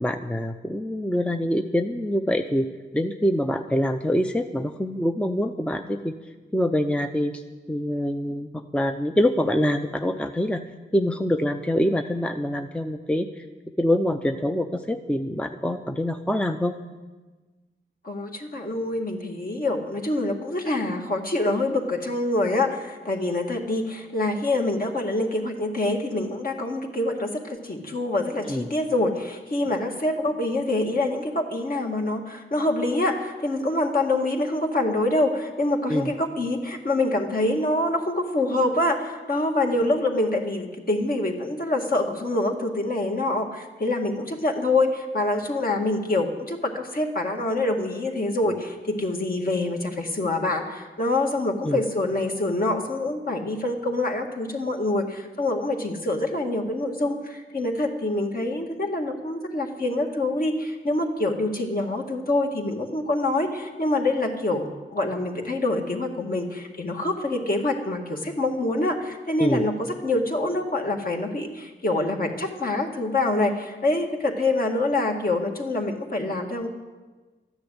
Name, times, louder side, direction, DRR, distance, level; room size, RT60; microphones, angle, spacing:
voice 1, 0.0-2.7 2.9-6.1 6.5-7.4 7.7-10.6 10.9-13.4 13.8-16.7 28.5-28.7 29.7-29.8 35.9-36.1 51.6-51.8 69.4-69.7, left 1 dB, 5° left, 6 dB, 0.7 m, -25 dB
voice 2, 18.0-69.7 70.0-76.7, left 2 dB, 50° left, 1 dB, 2.0 m, -25 dB
13.0 x 10.5 x 8.0 m, 1.3 s
wide cardioid pair, 80°, 19 cm